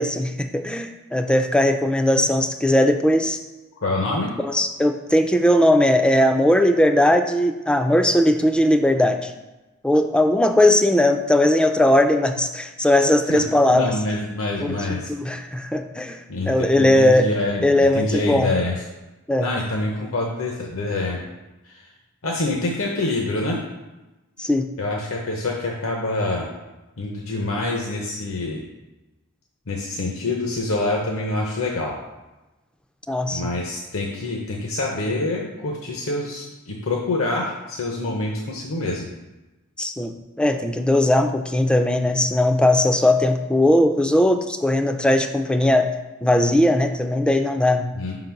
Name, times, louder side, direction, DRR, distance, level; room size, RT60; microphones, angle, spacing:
voice 1, 0.0-3.4 4.4-9.3 9.8-14.0 14.6-14.7 15.1-16.2 16.5-17.3 17.6-18.5 19.3-19.5 24.4-24.7 33.1-33.5 39.8-45.9 46.2-47.9, left 1 dB, 5° left, 6 dB, 0.3 m, -19 dB
voice 2, 3.8-4.3 13.3-13.4 13.7-15.1 16.3-18.8 19.4-21.2 21.6-21.9 22.2-23.6 24.8-26.5 27.0-28.6 29.7-31.9 33.3-39.1 47.9-48.2, left 2 dB, 70° left, -1 dB, 0.8 m, -26 dB
5.3 x 3.9 x 5.8 m, 1.1 s
head